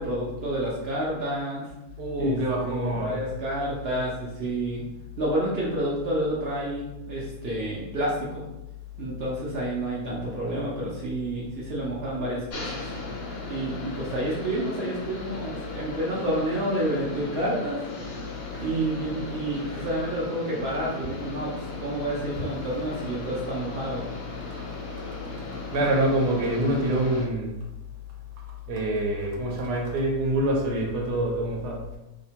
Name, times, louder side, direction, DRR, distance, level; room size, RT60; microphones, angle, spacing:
voice 1, 0.0-1.6 2.2-2.4 2.6-4.8 5.2-8.5 9.0-12.8 13.5-17.8 18.6-21.5 21.8-24.1, right 1 dB, 60° right, -5 dB, 0.6 m, -29 dB
voice 2, 2.0-3.2 18.5-18.7 25.7-27.5 28.7-32.0, right 1 dB, 85° right, -1 dB, 1.1 m, -26 dB
sound 1, 12.5-27.3, left 2 dB, 70° left, 1.1 m, -37 dB
2.8 x 2.1 x 2.7 m, 0.96 s
omnidirectional pair, 1.6 m